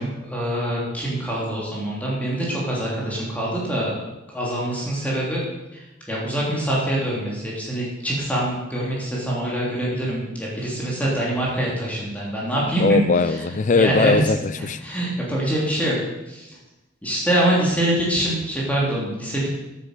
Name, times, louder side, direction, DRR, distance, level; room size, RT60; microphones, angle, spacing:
voice 1, 0.0-4.0 4.3-5.4 6.1-12.8 13.7-14.2 14.8-16.0 16.3-16.5 17.0-19.5, right 1 dB, 10° left, -5 dB, 3.1 m, -24 dB
voice 2, 12.8-14.8, left 4 dB, 40° left, 14 dB, 0.4 m, -20 dB
12.0 x 9.8 x 6.7 m, 1.0 s
head